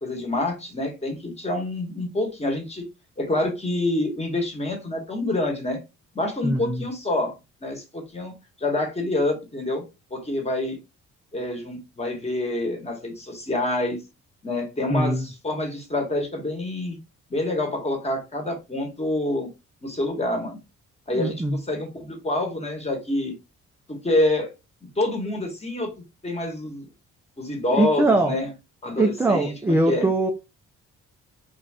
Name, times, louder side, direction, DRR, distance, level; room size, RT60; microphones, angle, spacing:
voice 1, 0.0-2.8 3.2-5.8 6.1-7.3 7.6-8.3 8.6-9.8 10.1-10.8 11.3-14.0 14.4-17.0 17.3-19.5 19.8-20.6 21.1-23.3 23.9-24.5 24.8-25.9 26.2-26.9 27.4-28.5 28.8-30.1, left 2 dB, 20° left, 2 dB, 1.1 m, -27 dB
voice 2, 6.4-6.9 14.9-15.3 21.1-21.6 27.7-28.4 29.0-30.3, right 2 dB, 10° right, 3 dB, 0.3 m, -22 dB
2.5 x 2.3 x 3.3 m, 0.27 s
cardioid pair, 90°, 30 cm